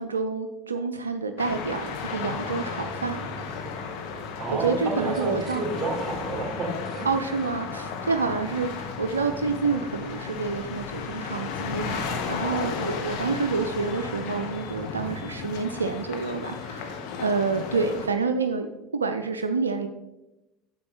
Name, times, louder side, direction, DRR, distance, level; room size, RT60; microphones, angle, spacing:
voice 1, 0.0-3.3 4.5-5.6 7.0-18.7 18.9-19.9, right 4 dB, 80° right, 7 dB, 0.4 m, -28 dB
sound 1, 1.4-18.1, left 5 dB, 60° left, 1.4 m, -34 dB
voice 2, 4.4-7.1, right 2 dB, 25° right, 0 dB, 3.6 m, -30 dB
9.4 x 7.3 x 3.9 m, 0.97 s
figure-of-eight pair, 65°, 0 cm